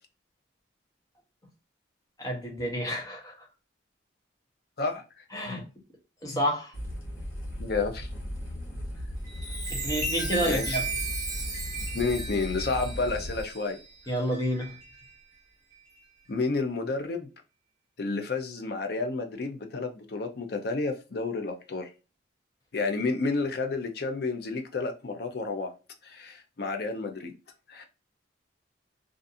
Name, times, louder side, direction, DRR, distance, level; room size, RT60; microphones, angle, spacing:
voice 1, 2.2-3.5 5.3-5.7 6.2-6.7 9.7-10.8 14.1-14.8, equal, 20° left, 0.7 m, -30 dB
sound 1, 6.7-13.4, equal, 75° left, 1.0 m, -37 dB
voice 2, 7.6-8.1 10.5-10.8 11.9-13.8 16.3-17.3 18.0-21.9 22.7-25.7 26.0-27.3 27.7-27.9, left 3 dB, 50° left, 0.5 m, -30 dB
Chime, 9.2-15.2 15.7-16.0, right 3 dB, 20° right, 0.7 m, -36 dB
2.5 x 2.4 x 2.5 m
head